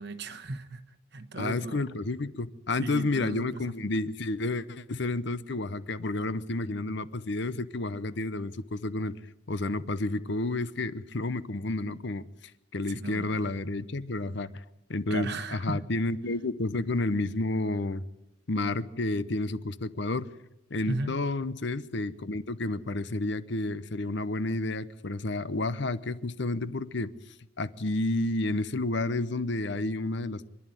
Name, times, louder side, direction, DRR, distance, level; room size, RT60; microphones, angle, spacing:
voice 1, 0.0-1.8 2.8-3.7 12.9-13.5 15.1-15.9 20.9-21.2, right 2 dB, 55° right, 1.2 m, -36 dB
voice 2, 1.4-9.1 9.5-12.3 12.7-14.6 14.9-18.0 18.5-20.3 20.7-27.1 27.6-30.5, left 2 dB, 60° left, 0.8 m, -30 dB
25.5 x 11.0 x 9.2 m
head